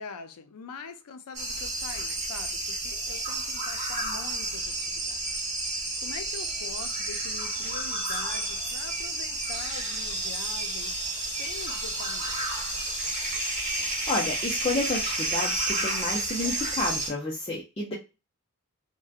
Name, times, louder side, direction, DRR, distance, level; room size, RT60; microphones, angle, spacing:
voice 1, 0.0-5.2 5.7-12.4, left 5 dB, 85° left, 0.5 m, -44 dB
sound 1, 1.3-17.1, right 2 dB, 30° right, 1.2 m, -31 dB
voice 2, 13.8-17.9, left 2 dB, 25° left, 0.5 m, -30 dB
2.7 x 2.2 x 2.3 m
head